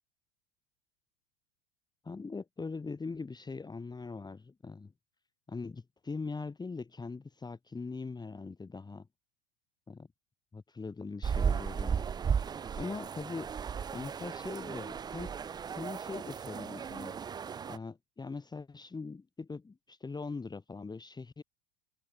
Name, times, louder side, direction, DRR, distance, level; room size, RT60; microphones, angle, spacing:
voice 1, 2.0-4.9 5.5-9.1 9.9-10.1 10.5-12.1 12.8-13.5 13.9-15.3 15.7-17.1 17.7-21.4, left 4 dB, 15° left, 2.7 m, -41 dB
sound 1, 11.2-17.8, right 7 dB, 15° right, 0.5 m, -35 dB
figure-of-eight pair, 85°, 32 cm